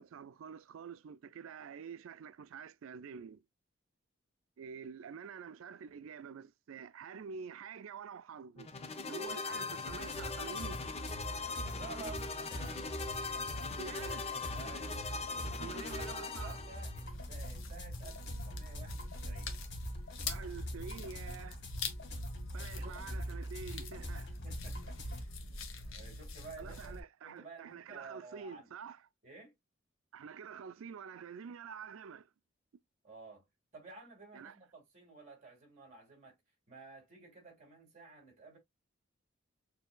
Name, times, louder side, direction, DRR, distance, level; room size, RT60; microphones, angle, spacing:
voice 1, 0.0-3.4 4.6-8.7 9.1-10.8 13.8-14.3 15.6-16.6 20.3-21.6 22.5-24.4 26.6-29.0 30.1-32.3 34.3-34.6, right 6 dB, 90° right, 0.4 m, -47 dB
sound 1, 8.6-17.1, left 4 dB, 30° left, 0.5 m, -40 dB
sound 2, 9.9-25.2, equal, 60° left, 1.6 m, -44 dB
voice 2, 11.7-13.3 14.5-15.0 15.9-19.5 22.5-23.0 24.4-25.4 25.9-26.9 27.2-28.7 29.2-29.5 33.0-33.4 33.7-36.4 36.7-38.6, right 4 dB, 35° right, 2.9 m, -52 dB
sound 3, 17.0-27.0, left 2 dB, 90° left, 1.0 m, -44 dB
6.7 x 2.8 x 2.2 m
head